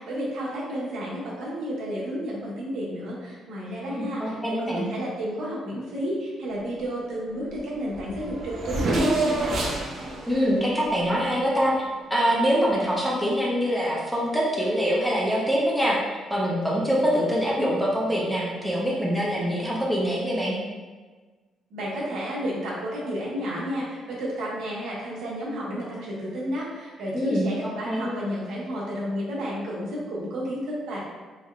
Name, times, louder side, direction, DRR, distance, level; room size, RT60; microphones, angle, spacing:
voice 1, 0.0-9.5 21.7-31.0, equal, 80° right, -6 dB, 1.2 m, -31 dB
voice 2, 3.8-4.9 10.3-11.7 12.1-16.0 16.3-20.6 27.1-27.5 27.8-28.1, equal, ahead, -5 dB, 0.7 m, -24 dB
Race car auto racing / Accelerating revving vroom, 7.5-7.6 7.8-11.8, right 2 dB, 50° right, 0.7 m, -29 dB
4.2 x 3.5 x 2.4 m, 1.4 s
cardioid pair, 160°, 0 cm